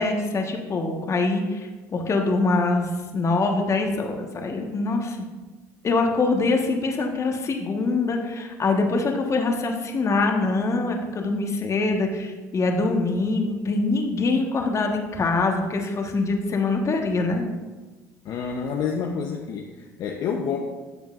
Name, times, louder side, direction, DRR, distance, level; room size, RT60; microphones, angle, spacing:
voice 1, 0.0-5.2 5.8-17.4, left 3 dB, 40° left, 3 dB, 1.4 m, -24 dB
voice 2, 18.2-20.6, left 6 dB, 55° left, 2 dB, 0.8 m, -28 dB
13.0 x 7.0 x 2.5 m, 1.3 s
hypercardioid pair, 65°, 8 cm